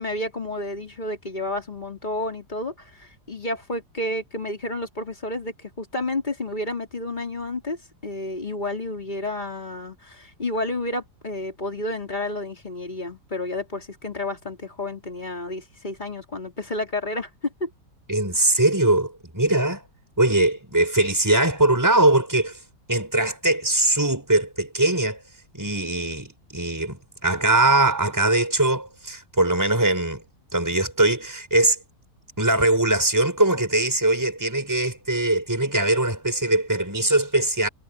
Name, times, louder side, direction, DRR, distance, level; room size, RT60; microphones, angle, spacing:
voice 1, 0.0-17.7, left 2 dB, 25° left, 3.8 m, -31 dB
voice 2, 18.1-19.8 20.2-22.6 22.9-25.2 25.5-30.2 30.5-31.8 32.4-37.7, right 2 dB, 10° right, 5.4 m, -21 dB
omnidirectional pair, 1.8 m